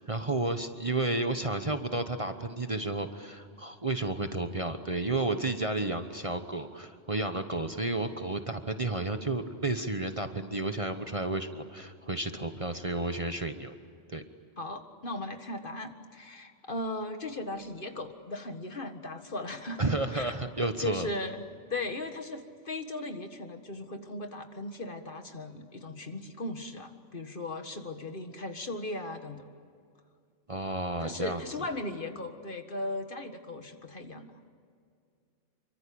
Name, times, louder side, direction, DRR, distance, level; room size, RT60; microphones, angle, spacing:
voice 1, 0.0-13.7 14.1-14.2 19.8-21.1 30.5-31.7, right 2 dB, 30° right, 7 dB, 1.1 m, -32 dB
voice 2, 14.6-20.3 20.8-21.4 21.7-29.5 31.0-34.3, left 2 dB, 45° left, 7 dB, 1.9 m, -37 dB
27.5 x 24.0 x 8.7 m, 2.3 s
omnidirectional pair, 1.2 m